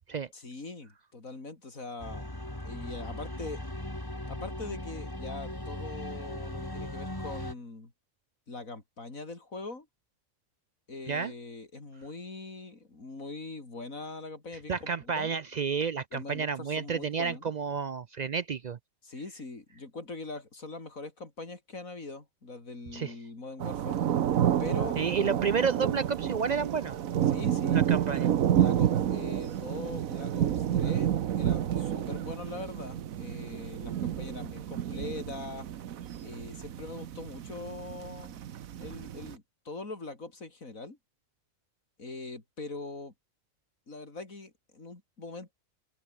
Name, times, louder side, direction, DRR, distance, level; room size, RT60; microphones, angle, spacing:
voice 1, 0.3-2.3 2.6-3.6 4.3-7.9 8.5-9.9 10.9-15.3 16.1-17.5 19.0-24.0 24.6-25.3 27.3-27.8 28.6-35.7 36.2-38.4 38.8-41.0 42.0-43.1 43.9-45.5, left 3 dB, 80° left, 4.5 m, -42 dB
sound 1, 2.0-7.5, left 1 dB, 15° left, 3.3 m, -38 dB
voice 2, 14.7-18.8 22.9-23.1 25.0-27.0 27.7-28.3, right 6 dB, 65° right, 0.4 m, -30 dB
sound 2, 23.6-39.3, right 10 dB, 80° right, 1.3 m, -30 dB
open air
omnidirectional pair, 1.4 m